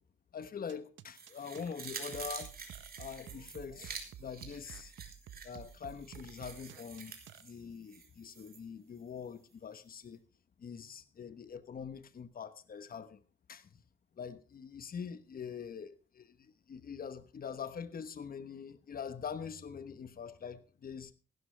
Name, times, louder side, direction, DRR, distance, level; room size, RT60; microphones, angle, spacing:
voice 1, 0.3-2.5 3.0-4.9 5.4-7.1 7.4-10.2 10.6-13.2 13.5-13.7 14.2-21.1, left 6 dB, 50° left, 1.2 m, -44 dB
sound 1, 0.7-7.4, right 10 dB, 75° right, 1.0 m, -51 dB
sound 2, 1.1-8.6 9.0-9.1, right 5 dB, 50° right, 3.2 m, -48 dB
15.5 x 12.0 x 3.4 m
cardioid pair, 75°, 20 cm